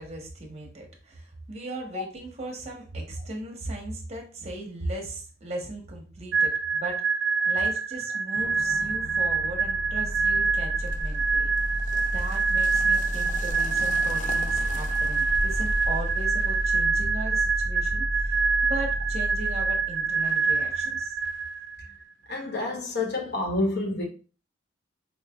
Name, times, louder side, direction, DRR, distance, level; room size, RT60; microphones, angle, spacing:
voice 1, 0.0-7.0 7.5-11.8 12.1-21.2, right 1 dB, 35° right, 0.9 m, -38 dB
sound 1, 6.3-21.9, right 4 dB, 75° right, 0.4 m, -26 dB
sound 2, 8.3-21.0, equal, 85° left, 1.4 m, -33 dB
sound 3, 10.9-16.3, left 2 dB, 40° left, 0.4 m, -39 dB
voice 2, 22.3-24.0, left 2 dB, 60° left, 1.0 m, -28 dB
4.1 x 3.2 x 2.3 m
head